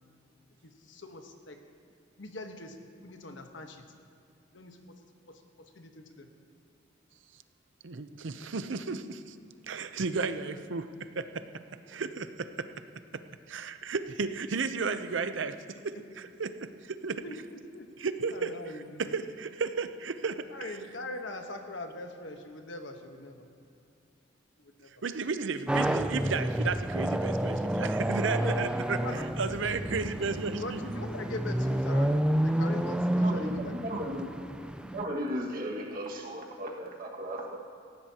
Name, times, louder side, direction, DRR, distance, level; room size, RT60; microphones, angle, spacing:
voice 1, 0.6-1.6 2.2-3.8 4.5-5.0 5.3-6.3 17.2-17.9 18.3-19.1 20.5-23.4 24.6-24.9 28.2-28.7 29.0-29.9 30.6-33.9, left 2 dB, 75° left, 5 dB, 1.2 m, -42 dB
voice 2, 7.8-9.4 9.6-11.5 11.9-12.7 13.5-15.6 15.8-17.2 18.0-20.8 25.0-30.8, right 4 dB, 75° right, 10 dB, 0.6 m, -34 dB
sound 1, 25.7-35.0, right 1 dB, 5° right, 0.3 m, -30 dB
voice 3, 33.2-34.3 34.9-37.6, equal, 50° right, -1 dB, 1.8 m, -36 dB
18.5 x 15.0 x 2.9 m, 2.6 s
head